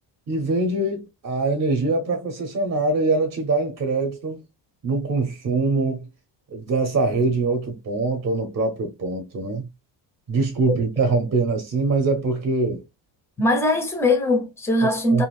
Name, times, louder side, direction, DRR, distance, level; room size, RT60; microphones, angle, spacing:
voice 1, 0.3-4.4 4.8-6.1 6.5-9.7 10.3-12.8 14.8-15.2, right 3 dB, 35° right, 0.7 m, -23 dB
voice 2, 13.4-15.3, left 1 dB, 5° left, 0.4 m, -21 dB
2.6 x 2.4 x 2.9 m
cardioid pair, 160°, 46 cm